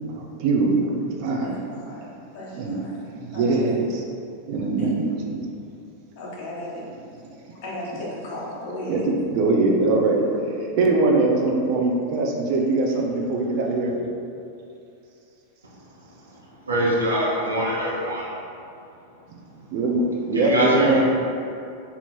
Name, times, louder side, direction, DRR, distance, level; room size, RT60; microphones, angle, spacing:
voice 1, 0.1-1.5 2.6-2.8 3.1-4.0 4.5-5.4 8.9-10.2 10.5-13.9 19.7-21.0, right 3 dB, 45° right, -1 dB, 0.6 m, -22 dB
voice 2, 1.4-2.1 2.3-3.0 3.3-3.6 4.8-4.9 6.1-6.8 7.3-9.0, left 1 dB, 45° left, -5 dB, 1.2 m, -35 dB
voice 3, 15.6-16.0 16.3-18.3 20.3-21.0, right 1 dB, 75° right, -6 dB, 1.1 m, -24 dB
4.4 x 2.8 x 4.4 m, 2.6 s
figure-of-eight pair, 90°, 0 cm